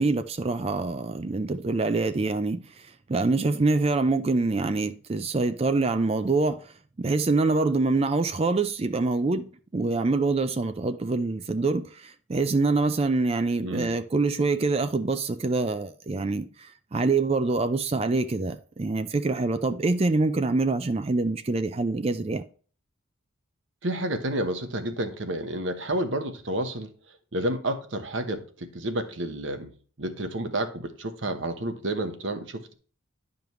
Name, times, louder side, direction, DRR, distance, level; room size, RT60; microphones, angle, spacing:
voice 1, 0.0-22.5, right 3 dB, 30° right, 0.4 m, -25 dB
voice 2, 13.6-13.9 23.8-32.7, right 1 dB, 70° right, 1.1 m, -30 dB
10.5 x 5.2 x 3.1 m
head